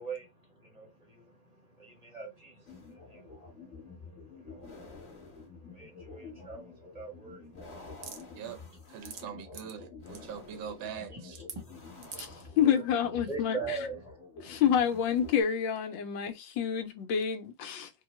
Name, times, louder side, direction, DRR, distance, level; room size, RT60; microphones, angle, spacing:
voice 1, 0.0-8.4 11.1-11.2 11.5-12.8 13.3-14.2 14.4-14.6, right 4 dB, 30° right, 0.8 m, -44 dB
sound 1, 2.7-15.4, left 4 dB, 40° left, 1.6 m, -49 dB
sound 2, 8.0-8.2 8.8-9.2 9.5-9.7 10.1-10.2 11.3-11.6 12.0-12.4, right 6 dB, 60° right, 1.0 m, -42 dB
voice 2, 8.9-11.4, right 8 dB, 85° right, 1.5 m, -42 dB
voice 3, 12.6-13.6 14.4-17.9, left 8 dB, 80° left, 1.4 m, -28 dB
4.5 x 2.3 x 3.1 m
omnidirectional pair, 2.1 m